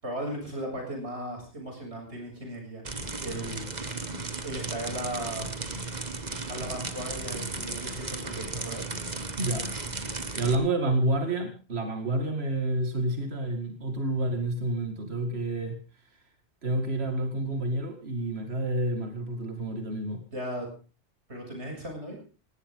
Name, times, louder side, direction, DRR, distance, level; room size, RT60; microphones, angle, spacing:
voice 1, 0.0-2.8 3.2-3.6 4.4-5.5 6.5-8.9 20.3-20.7 21.3-22.2, right 1 dB, 85° right, 1 dB, 7.5 m, -36 dB
sound 1, 2.8-10.5, right 3 dB, 40° right, 1.7 m, -35 dB
voice 2, 9.4-9.7 10.3-15.8 16.6-20.2, right 1 dB, 65° right, 5 dB, 2.5 m, -29 dB
18.5 x 17.5 x 3.8 m, 0.36 s
omnidirectional pair, 1.1 m